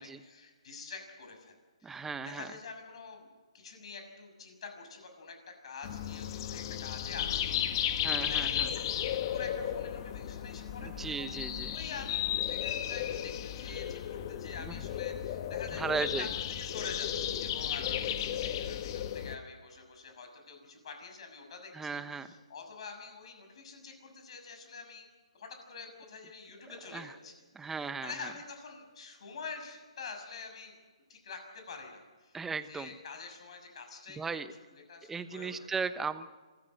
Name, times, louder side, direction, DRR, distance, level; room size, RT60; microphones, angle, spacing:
voice 1, 0.0-3.3 3.5-11.4 11.7-25.1 25.3-27.7 28.0-30.8 31.1-32.4 32.7-34.4 34.7-35.5, left 4 dB, 55° left, 5 dB, 6.4 m, -47 dB
voice 2, 1.8-2.5 8.0-8.7 10.8-11.8 14.6-14.8 15.8-16.3 21.7-22.4 26.9-27.1 27.5-28.3 32.3-32.9 34.1-34.5 35.1-36.3, right 5 dB, 10° right, 12 dB, 0.9 m, -36 dB
sound 1, 5.8-19.3, left 10 dB, 40° left, 1.4 m, -34 dB
26.0 x 14.0 x 9.2 m, 1.3 s
hypercardioid pair, 145°, 4 cm